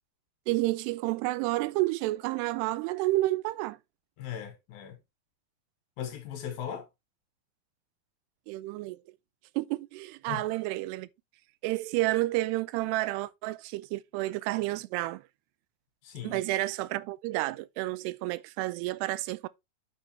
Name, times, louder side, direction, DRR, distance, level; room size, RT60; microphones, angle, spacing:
voice 1, 0.5-3.8 8.5-9.0 9.6-11.1 11.6-15.2 16.2-19.5, right 18 dB, 85° right, 2.6 m, -30 dB
voice 2, 4.2-5.0 6.0-6.9 10.3-10.5 16.0-16.4, left 9 dB, 65° left, 2.8 m, -38 dB
9.0 x 5.5 x 3.4 m
omnidirectional pair, 4.8 m